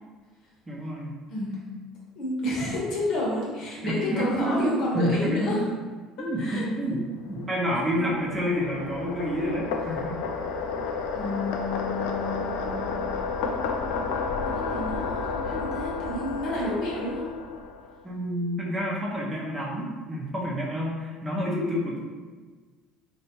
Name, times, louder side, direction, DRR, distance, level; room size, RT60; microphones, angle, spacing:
voice 1, 0.7-1.2 3.8-5.6 6.2-10.2 18.0-22.2, equal, 15° right, -4 dB, 0.7 m, -29 dB
voice 2, 1.3-1.8 2.2-5.6 6.4-6.6 8.0-8.1 11.1-12.9 14.5-17.3 21.8-21.9, left 1 dB, 65° left, -4 dB, 1.1 m, -30 dB
sound 1, 7.3-18.0, left 4 dB, 85° left, 0.3 m, -31 dB
3.2 x 2.5 x 2.9 m, 1.4 s
cardioid pair, 125°, 0 cm